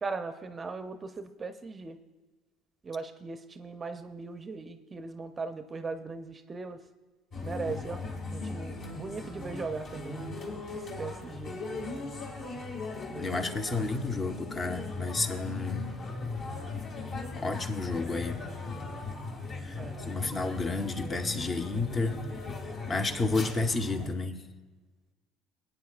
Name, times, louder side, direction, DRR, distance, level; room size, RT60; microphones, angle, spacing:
voice 1, 0.0-2.0 2.8-6.8 7.4-8.0 8.3-10.2 11.0-11.6 19.8-19.9, right 4 dB, 30° right, 9 dB, 0.6 m, -38 dB
sound 1, 7.3-24.1, left 3 dB, 50° left, 2.1 m, -38 dB
voice 2, 13.1-16.0 17.4-18.5 19.6-22.2 22.9-24.4, left 3 dB, 30° left, 6 dB, 1.0 m, -31 dB
19.0 x 8.8 x 2.4 m, 1.3 s
hypercardioid pair, 80°, 0 cm